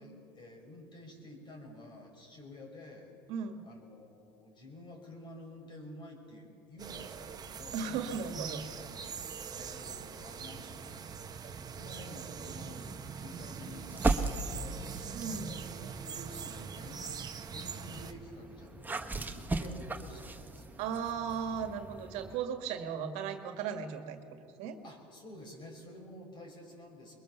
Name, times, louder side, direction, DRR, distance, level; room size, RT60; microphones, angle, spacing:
voice 1, 0.0-3.1 3.6-7.9 8.5-11.3 11.7-20.8 22.1-22.4 24.8-27.2, left 1 dB, 40° left, 2 dB, 6.3 m, -51 dB
voice 2, 3.3-3.7 7.7-8.6 15.1-15.5 20.8-24.8, right 7 dB, 65° right, 7 dB, 1.8 m, -36 dB
sound 1, 6.8-18.1, right 6 dB, 35° right, 1.3 m, -43 dB
sound 2, 13.9-15.5 16.1-22.4, right 3 dB, 15° right, 1.4 m, -37 dB
22.5 x 22.0 x 7.0 m, 2.6 s
hypercardioid pair, 80°, 12 cm